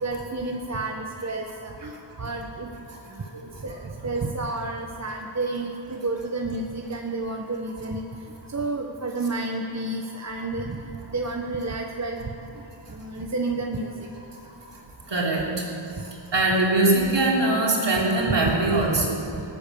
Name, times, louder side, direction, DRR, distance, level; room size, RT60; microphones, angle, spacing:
voice 1, 0.0-2.7 3.1-3.3 3.6-8.0 8.5-10.8 11.1-12.6 12.9-14.1 19.3-19.4, right 2 dB, 35° right, 2 dB, 1.0 m, -30 dB
voice 2, 15.1-15.6 16.3-19.2, right 2 dB, 60° right, -3 dB, 3.4 m, -22 dB
18.5 x 8.6 x 6.9 m, 2.7 s
wide cardioid pair, 80°, 49 cm